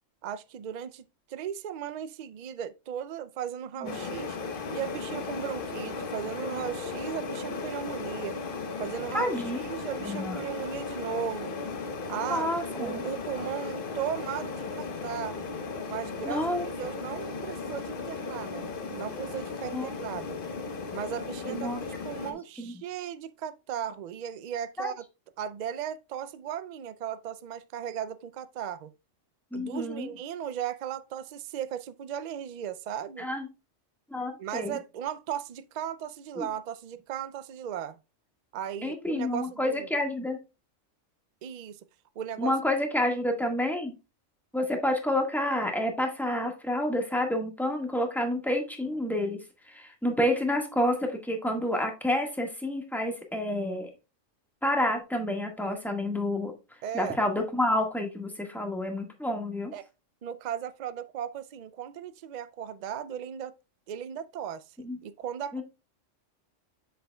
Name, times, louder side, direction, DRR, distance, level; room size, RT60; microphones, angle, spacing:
voice 1, 0.2-4.4 4.7-8.4 8.8-11.6 12.1-12.5 12.8-15.5 15.9-16.4 16.7-20.4 20.9-25.0 25.4-28.9 29.5-33.3 34.4-38.0 38.5-39.9 41.4-41.8 42.2-42.6 56.8-57.2 59.7-59.9 60.2-63.6 63.9-65.6, right 9 dB, 85° right, 0.3 m, -36 dB
sound 1, 3.9-22.3, left 4 dB, 50° left, 1.0 m, -36 dB
voice 2, 9.1-9.6 10.0-10.4 12.3-13.0 16.2-16.7 19.7-19.9 21.5-21.8 22.2-22.8 24.8-24.9 29.5-30.1 33.2-33.5 34.1-34.8 36.4-36.5 38.8-40.4 42.4-43.9 44.5-49.4 49.7-53.9 54.6-56.5 56.9-59.7 64.8-65.0 65.5-65.6, left 1 dB, ahead, 1.4 m, -29 dB
7.7 x 6.6 x 2.2 m
omnidirectional pair, 1.3 m